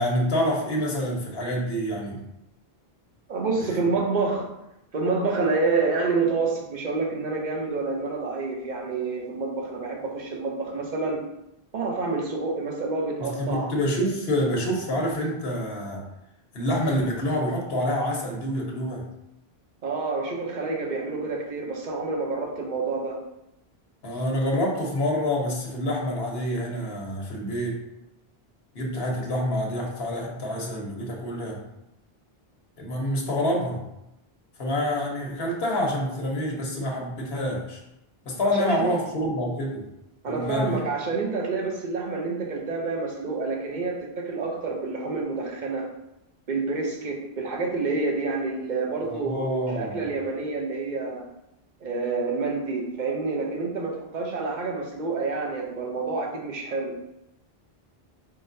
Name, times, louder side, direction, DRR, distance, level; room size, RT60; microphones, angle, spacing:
voice 1, 0.0-2.2 3.6-3.8 13.2-16.0 16.5-19.1 24.0-27.8 28.7-31.6 32.8-33.8 34.6-37.8 38.2-39.8 40.3-40.8 49.0-50.0, equal, 70° left, 0 dB, 1.2 m, -27 dB
voice 2, 3.3-4.5 4.9-11.2 11.7-13.7 19.8-23.2 38.4-38.9 40.2-45.9 46.5-51.2 51.8-56.9, right 3 dB, 50° right, 0 dB, 0.9 m, -28 dB
4.3 x 3.9 x 2.6 m, 0.87 s
omnidirectional pair, 1.0 m